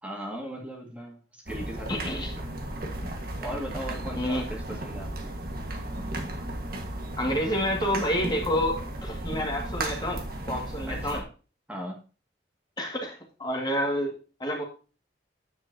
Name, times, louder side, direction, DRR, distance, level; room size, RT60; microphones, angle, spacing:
voice 1, 0.0-2.4 3.4-5.3 10.9-11.2 11.7-12.0, equal, 10° right, -1 dB, 2.0 m, -38 dB
sound 1, 1.5-11.2, right 1 dB, 55° right, 1.6 m, -35 dB
voice 2, 1.9-2.3 4.1-4.4 7.2-11.2 12.8-14.6, equal, 25° left, 0 dB, 2.0 m, -29 dB
9.9 x 7.7 x 2.8 m, 0.35 s
head